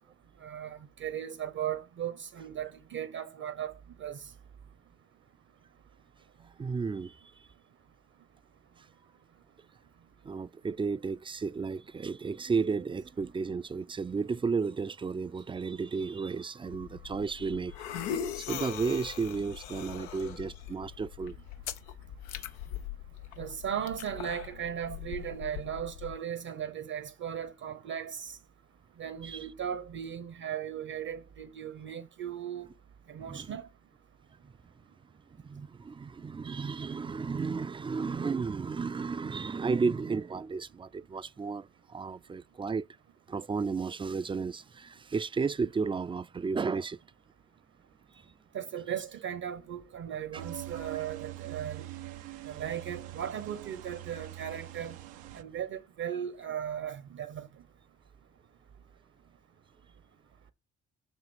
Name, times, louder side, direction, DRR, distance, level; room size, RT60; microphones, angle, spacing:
voice 1, 0.4-3.7 4.0-4.3 23.4-28.4 29.0-32.7 33.1-33.7 48.5-51.9 52.5-54.9 55.3-57.5, right 9 dB, 60° right, 0.9 m, -37 dB
voice 2, 6.6-7.2 10.2-17.8 18.4-21.4 22.3-22.4 29.2-29.4 33.2-33.6 34.4-34.5 35.3-42.9 43.3-47.0 48.1-48.2 50.3-50.4 50.9-51.0, right 5 dB, 15° right, 0.4 m, -33 dB
sound 1, 16.7-26.2, left 9 dB, 90° left, 0.5 m, -41 dB
sound 2, 50.4-55.4, right 15 dB, 85° right, 0.5 m, -43 dB
7.2 x 3.0 x 6.0 m
hypercardioid pair, 40°, 32 cm